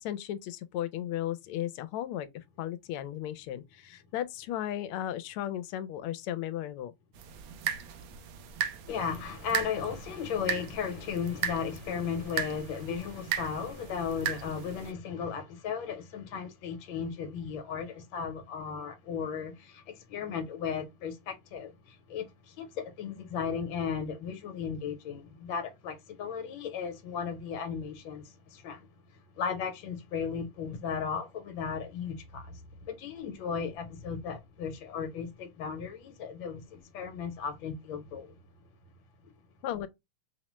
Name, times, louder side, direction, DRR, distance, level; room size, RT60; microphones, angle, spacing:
voice 1, 0.0-2.3 2.6-6.9 36.8-36.9 39.6-39.9, left 12 dB, 85° left, 1.5 m, -35 dB
sound 1, 7.2-14.9, right 8 dB, 75° right, 1.4 m, -37 dB
voice 2, 8.9-28.9 29.3-38.4 39.2-39.3, left 6 dB, 70° left, 1.5 m, -36 dB
5.3 x 2.1 x 3.0 m
omnidirectional pair, 2.4 m